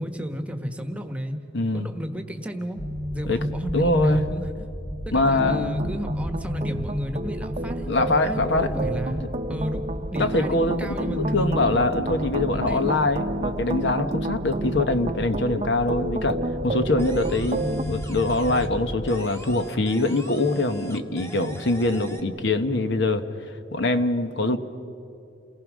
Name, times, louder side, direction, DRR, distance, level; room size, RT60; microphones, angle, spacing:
voice 1, 0.0-1.4 1.7-2.8 3.1-4.7 5.0-7.9 8.2-9.2 9.5-9.9 10.1-11.8 12.5-13.1, equal, 5° right, 6 dB, 1.3 m, -32 dB
voice 2, 1.5-1.9 3.3-3.5 3.7-4.2 5.1-5.8 7.9-8.7 10.2-23.2 23.7-24.6, left 2 dB, 65° left, 9 dB, 1.1 m, -23 dB
sound 1, 2.8-19.1, equal, 40° left, 2.2 m, -34 dB
sound 2, 5.2-17.8, right 2 dB, 35° right, 0.7 m, -31 dB
sound 3, 17.0-18.8 19.1-22.2, right 1 dB, 15° left, 1.8 m, -43 dB
29.0 x 19.0 x 6.3 m, 2.7 s
head